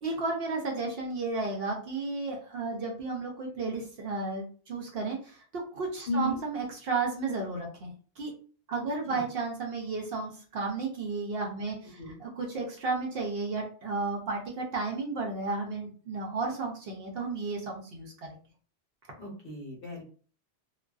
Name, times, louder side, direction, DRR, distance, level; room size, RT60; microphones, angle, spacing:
voice 1, 0.0-8.3 8.7-18.1, right 3 dB, 60° right, 0 dB, 0.8 m, -33 dB
voice 2, 6.1-6.4 9.1-9.2 12.0-12.1 19.2-20.0, left 1 dB, 55° left, -2 dB, 0.9 m, -34 dB
2.4 x 2.2 x 2.3 m, 0.43 s
omnidirectional pair, 1.2 m